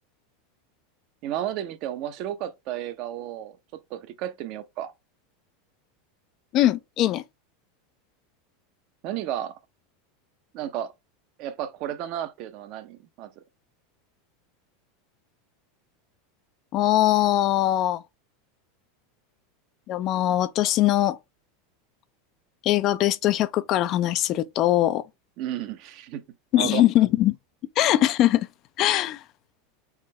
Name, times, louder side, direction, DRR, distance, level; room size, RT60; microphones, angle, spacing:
voice 1, 1.2-3.6 3.9-4.9 9.0-9.6 10.5-10.9 11.4-13.4 25.4-26.2 26.5-26.9, right 11 dB, 50° right, 0.6 m, -33 dB
voice 2, 6.5-7.2 16.7-18.0 19.9-21.2 22.6-25.0 26.5-27.3 27.8-28.5 28.8-29.2, left 14 dB, 45° left, 0.4 m, -21 dB
4.0 x 3.6 x 3.2 m
hypercardioid pair, 85°, 0 cm